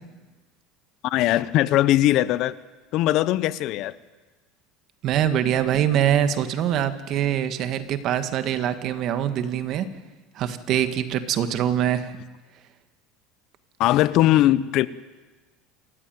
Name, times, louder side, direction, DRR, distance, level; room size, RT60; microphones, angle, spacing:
voice 1, 1.0-2.5 2.9-3.9 13.8-14.9, left 14 dB, 55° left, 17 dB, 0.9 m, -20 dB
voice 2, 5.0-9.9 10.4-12.2, right 10 dB, 50° right, 10 dB, 1.8 m, -24 dB
27.5 x 14.5 x 9.2 m, 1.3 s
supercardioid pair, 130°, 0 cm